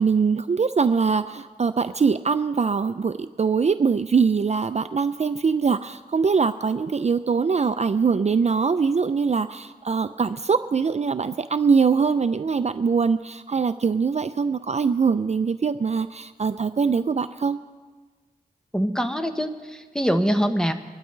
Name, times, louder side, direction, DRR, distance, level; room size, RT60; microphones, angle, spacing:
voice 1, 0.0-17.6, right 5 dB, 45° right, 11 dB, 0.4 m, -22 dB
voice 2, 18.7-20.7, equal, 5° left, 7 dB, 1.1 m, -24 dB
24.5 x 12.0 x 3.3 m, 1.4 s
cardioid pair, 55°, 16 cm